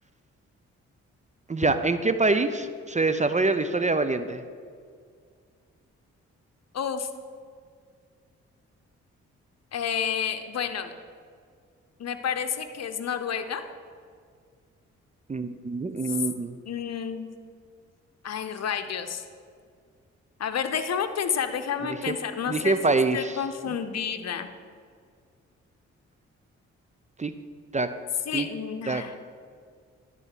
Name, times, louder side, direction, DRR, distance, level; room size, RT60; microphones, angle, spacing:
voice 1, 1.5-4.4 15.3-16.6 22.1-22.2 22.5-23.4 23.7-23.8 27.2-27.3 27.7-27.9 28.3-28.5 28.9-29.0, right 3 dB, 20° right, 10 dB, 0.6 m, -25 dB
voice 2, 6.7-7.1 9.7-10.9 12.0-13.6 16.1-16.2 16.7-17.3 18.2-19.2 20.4-22.8 23.1-24.5 28.3-29.1, left 7 dB, 55° left, 8 dB, 0.8 m, -30 dB
10.5 x 4.2 x 7.6 m, 2.1 s
hypercardioid pair, 40°, 32 cm